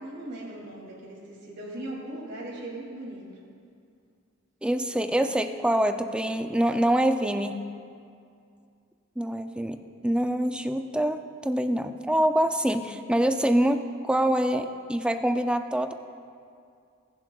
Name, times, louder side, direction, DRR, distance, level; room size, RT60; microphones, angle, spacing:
voice 1, 0.0-3.3, right 1 dB, 55° right, -4 dB, 2.5 m, -39 dB
voice 2, 4.6-7.6 9.2-15.9, right 1 dB, 5° right, 7 dB, 0.3 m, -25 dB
20.0 x 7.4 x 2.3 m, 2.3 s
head